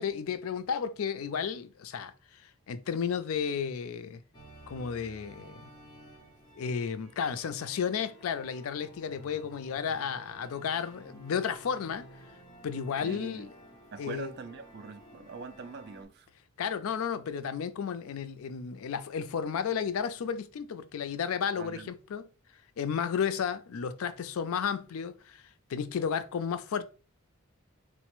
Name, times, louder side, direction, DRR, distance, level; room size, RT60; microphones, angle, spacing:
voice 1, 0.0-4.2 4.7-5.7 6.5-12.1 12.6-13.5 14.0-14.3 16.6-22.3 22.8-25.4 25.7-26.8, left 7 dB, 75° left, 0.4 m, -33 dB
sound 1, 4.3-16.0, right 1 dB, 20° left, 0.7 m, -53 dB
voice 2, 13.0-13.5 13.9-16.3 21.6-21.9, right 4 dB, 50° right, 0.3 m, -43 dB
4.0 x 2.1 x 3.0 m
head